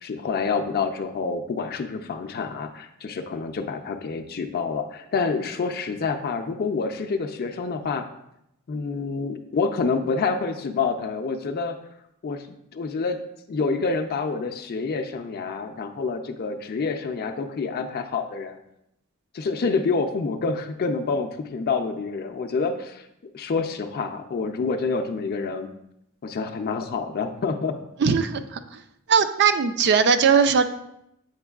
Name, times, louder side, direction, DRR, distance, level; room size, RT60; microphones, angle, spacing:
voice 1, 0.0-8.1 8.7-11.8 12.2-13.2 13.5-18.6 19.3-23.0 23.3-25.7 26.2-27.7, left 4 dB, 45° left, 6 dB, 0.4 m, -27 dB
voice 2, 28.0-28.8 29.1-30.7, right 6 dB, 55° right, 10 dB, 0.4 m, -19 dB
7.9 x 5.1 x 2.3 m, 0.80 s
head